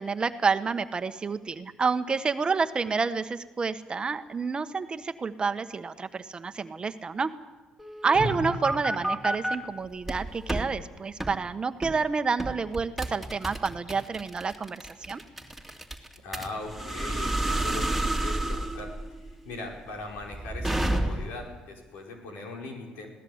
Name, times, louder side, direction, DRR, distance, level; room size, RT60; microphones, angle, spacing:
voice 1, 0.0-7.3 8.0-15.2, right 5 dB, 30° right, 10 dB, 1.2 m, -29 dB
sound 1, 7.8-9.6 10.0-10.7 11.2-11.4 11.8-12.0 12.4-21.4, right 1 dB, ahead, 2.7 m, -30 dB
sound 2, 8.1-10.3 10.6-10.7, equal, 40° left, 6.4 m, -37 dB
voice 2, 16.2-18.9 19.2-23.1, left 2 dB, 85° left, 0 dB, 5.1 m, -40 dB
21.0 x 17.0 x 8.0 m, 1.2 s
cardioid pair, 90°, 3 cm